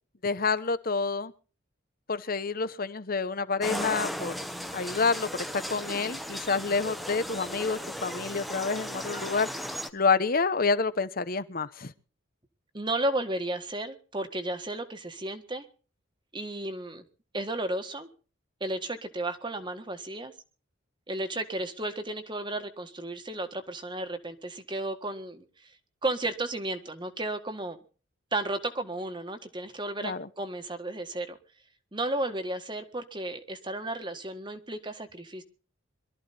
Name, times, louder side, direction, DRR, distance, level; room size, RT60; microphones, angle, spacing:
voice 1, 0.2-1.3 2.1-4.3 4.7-9.5 9.9-11.9 30.0-30.3, left 4 dB, 45° left, 0.9 m, -28 dB
sound 1, 3.6-9.9, equal, ahead, 1.1 m, -36 dB
voice 2, 12.7-15.7 16.3-17.0 17.3-18.1 18.6-20.3 21.1-25.7 26.0-27.8 28.3-31.4 31.9-35.4, right 1 dB, 25° right, 1.7 m, -33 dB
23.0 x 13.5 x 4.3 m
head